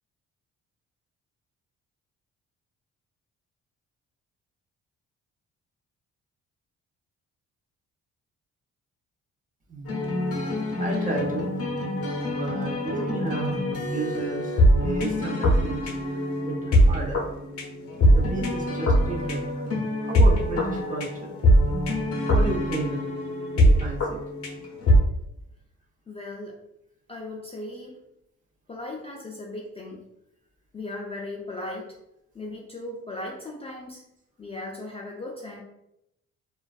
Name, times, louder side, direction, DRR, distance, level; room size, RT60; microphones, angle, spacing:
voice 1, 9.7-10.0 10.8-11.5 12.2-15.9 16.4-17.2 17.9-21.3 22.3-23.0 23.5-24.2, right 2 dB, 25° right, -3 dB, 0.7 m, -33 dB
sound 1, 9.9-25.0, equal, 50° left, 0.7 m, -23 dB
voice 2, 26.1-26.6 27.1-28.0 28.7-30.0 30.7-32.0 32.3-34.0 34.4-35.6, left 2 dB, 20° left, -1 dB, 0.4 m, -37 dB
2.4 x 2.3 x 2.3 m, 0.82 s
cardioid pair, 90°, 30 cm